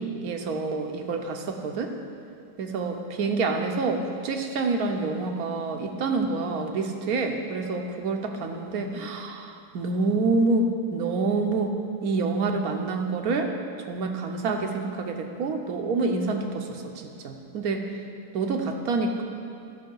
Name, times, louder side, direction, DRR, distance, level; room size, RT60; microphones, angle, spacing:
voice 1, 0.0-1.9 2.6-11.8 12.0-13.5 13.9-17.8 18.3-19.2, right 3 dB, 75° right, 4 dB, 1.2 m, -27 dB
15.0 x 5.9 x 3.8 m, 2.5 s
omnidirectional pair, 1.6 m